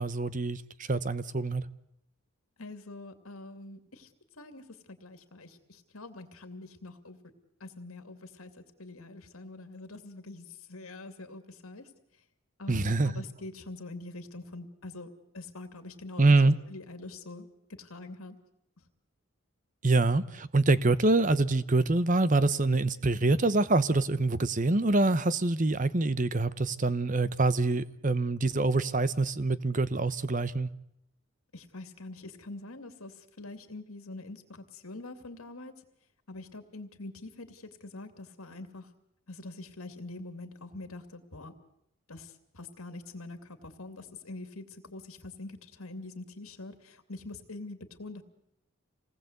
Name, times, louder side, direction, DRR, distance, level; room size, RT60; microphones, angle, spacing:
voice 1, 0.0-1.6 12.7-13.1 16.2-16.5 19.8-30.7, right 2 dB, 35° right, 0.9 m, -25 dB
voice 2, 2.6-7.2 7.6-12.2 12.6-15.1 15.3-16.4 16.7-17.5 17.8-18.4 18.8-18.9 31.5-35.8 36.3-38.9 39.3-41.5 42.1-48.2, left 2 dB, 75° left, 2.6 m, -45 dB
27.5 x 19.0 x 8.1 m
head